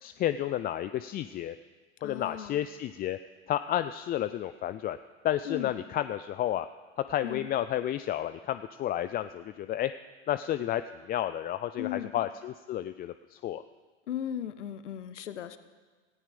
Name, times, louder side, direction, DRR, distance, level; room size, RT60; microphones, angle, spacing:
voice 1, 0.0-1.6 2.0-3.2 3.5-5.0 5.2-6.7 7.0-9.9 10.3-10.8 11.1-13.6, left 12 dB, 25° left, 12 dB, 0.4 m, -31 dB
voice 2, 2.0-2.6 5.4-5.7 7.2-7.5 11.8-12.1 14.1-15.6, left 10 dB, 80° left, 12 dB, 1.0 m, -36 dB
18.0 x 14.5 x 5.3 m, 1.4 s
hypercardioid pair, 85°, 35 cm